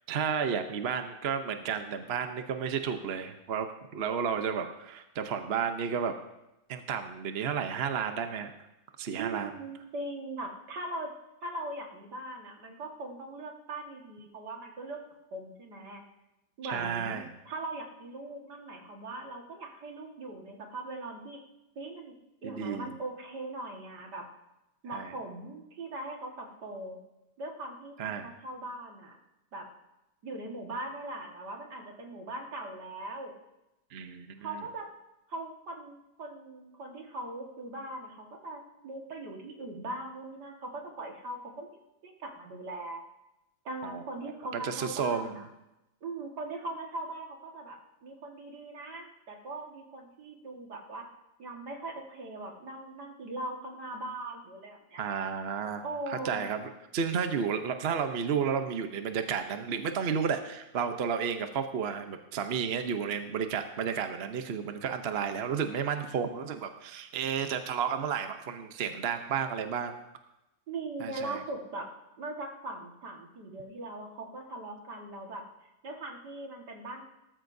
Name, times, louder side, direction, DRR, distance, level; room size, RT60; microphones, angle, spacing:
voice 1, 0.1-6.1 6.7-8.5 9.0-9.5 16.6-17.3 22.4-23.0 24.9-25.1 28.0-28.3 33.9-34.5 43.8-44.0 44.5-45.4 55.0-55.8 56.1-69.9 71.0-71.4, right 7 dB, 45° right, 7 dB, 0.9 m, -32 dB
voice 2, 9.2-11.1 11.4-15.0 15.3-16.0 16.6-21.4 21.8-22.1 22.4-24.3 24.8-27.0 27.4-29.2 29.5-29.7 30.2-33.3 34.4-34.9 35.3-43.0 43.6-45.5 46.0-51.1 51.4-55.0 55.8-56.5 70.7-71.9 72.2-75.4 75.8-77.0, right 2 dB, 75° right, 1 dB, 2.4 m, -40 dB
18.0 x 13.5 x 2.7 m, 0.93 s
omnidirectional pair, 1.8 m